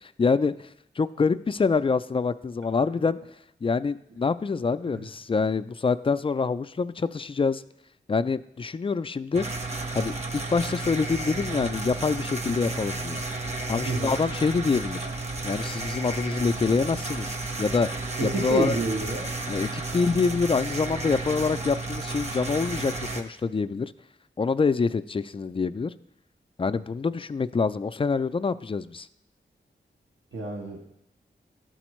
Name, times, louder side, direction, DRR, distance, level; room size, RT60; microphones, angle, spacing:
voice 1, 0.2-0.5 1.0-3.2 3.6-7.6 8.1-9.5 9.9-13.2 13.7-15.1 15.4-17.9 18.2-18.8 19.5-23.9 24.4-25.9 26.6-29.1, left 4 dB, 25° left, 14 dB, 0.3 m, -26 dB
sound 1, 9.3-23.2, right 2 dB, 35° right, 1.0 m, -32 dB
voice 2, 18.2-19.3 30.3-30.9, right 2 dB, 70° right, 0 dB, 1.1 m, -29 dB
12.0 x 4.2 x 3.1 m, 0.79 s
cardioid pair, 40°, 20 cm